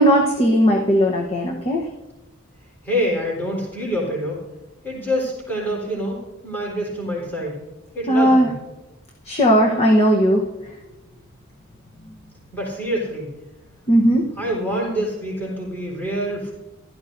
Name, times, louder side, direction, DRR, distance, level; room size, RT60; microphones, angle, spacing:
voice 1, 0.0-1.8 8.1-8.5 9.3-10.4 13.9-14.3, equal, 30° left, 1 dB, 1.0 m, -17 dB
voice 2, 2.8-4.4 4.8-6.2 6.4-7.6 7.9-8.5 12.5-13.3 14.4-16.5, equal, 10° left, -5 dB, 3.9 m, -26 dB
15.5 x 12.5 x 2.6 m, 1.0 s
head